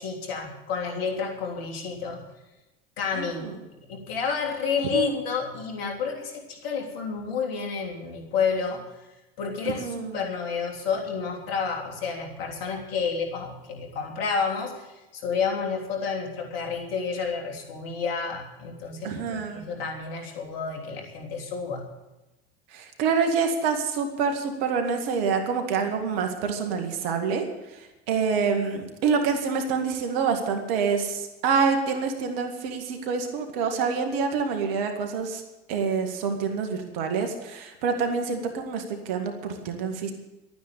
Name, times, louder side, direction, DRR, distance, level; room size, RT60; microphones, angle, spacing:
voice 1, 0.0-2.2 3.0-3.4 3.9-8.8 9.4-21.8, left 5 dB, 70° left, 1 dB, 3.3 m, -30 dB
voice 2, 3.1-3.6 4.9-5.1 9.7-10.2 19.0-19.7 22.7-27.5 27.7-35.4 35.7-40.1, right 5 dB, 70° right, 5 dB, 2.1 m, -27 dB
12.5 x 9.4 x 8.6 m, 1.0 s
hypercardioid pair, 75°, 30 cm